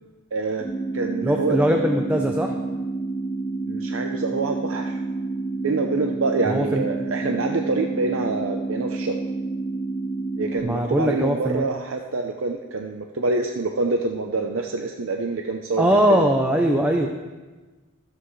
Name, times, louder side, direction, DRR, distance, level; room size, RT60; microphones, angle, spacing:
voice 1, 0.3-0.7 0.9-1.6 3.5-5.0 5.6-9.1 10.4-16.3, right 3 dB, 80° right, 3 dB, 0.7 m, -26 dB
sound 1, 0.6-10.6, right 3 dB, 30° left, 2.9 m, -29 dB
voice 2, 1.2-2.5 6.4-6.8 10.6-11.7 15.8-17.1, equal, 10° right, 2 dB, 0.6 m, -21 dB
22.5 x 7.9 x 3.2 m, 1.3 s
head